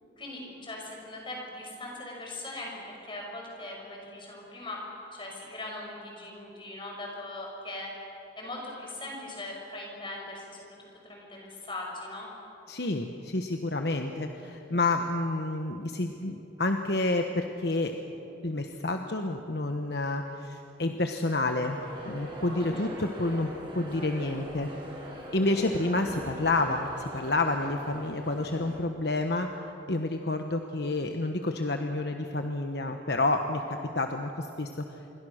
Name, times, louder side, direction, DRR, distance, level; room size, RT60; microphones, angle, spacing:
voice 1, 0.2-4.8 5.1-7.9 8.4-12.3 22.6-22.9, left 2 dB, 25° left, -1 dB, 5.7 m, -40 dB
voice 2, 12.7-17.9 18.4-21.8 22.1-24.7 25.3-35.0, left 2 dB, 65° left, 5 dB, 1.1 m, -29 dB
sound 1, 21.7-28.8, equal, 25° right, 5.9 m, -42 dB
27.5 x 23.0 x 6.5 m, 2.9 s
head